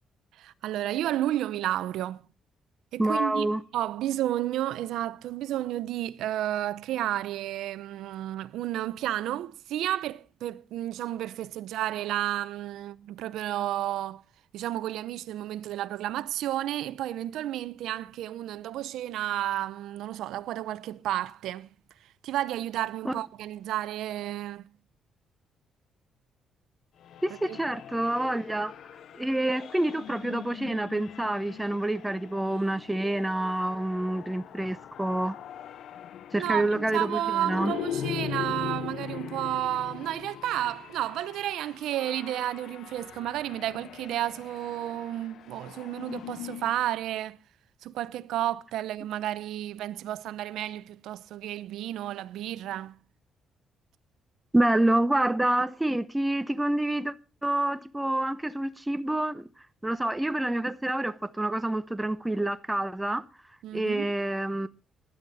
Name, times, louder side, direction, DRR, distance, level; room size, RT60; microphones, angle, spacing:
voice 1, 0.4-2.2 2.9-3.5 3.7-14.2 14.5-21.7 22.2-24.7 27.5-27.6 36.4-47.4 47.8-53.0 63.6-64.1, right 13 dB, 85° right, 0.7 m, -32 dB
voice 2, 3.0-3.6 23.0-23.1 27.2-28.7 29.1-35.4 36.3-37.7 54.5-57.1 57.4-59.5 59.8-63.2 63.7-64.7, right 1 dB, 10° right, 0.8 m, -27 dB
sound 1, 27.0-46.8, left 10 dB, 70° left, 0.6 m, -41 dB
16.0 x 11.0 x 4.1 m
cardioid pair, 90°, 0 cm